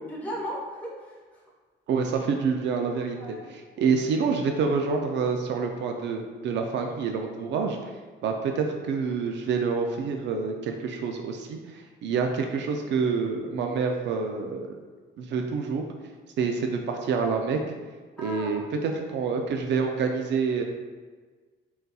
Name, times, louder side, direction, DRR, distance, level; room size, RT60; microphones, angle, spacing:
voice 1, 0.1-1.4 3.2-3.5 3.7-4.0 18.2-18.5 18.8-19.0, equal, 10° left, -6 dB, 1.1 m, -37 dB
voice 2, 1.9-7.8 8.2-14.8 15.2-15.8 16.4-17.6 18.2-20.6, right 5 dB, 70° right, 3 dB, 0.4 m, -27 dB
4.0 x 3.9 x 2.3 m, 1.4 s
cardioid pair, 155°, 19 cm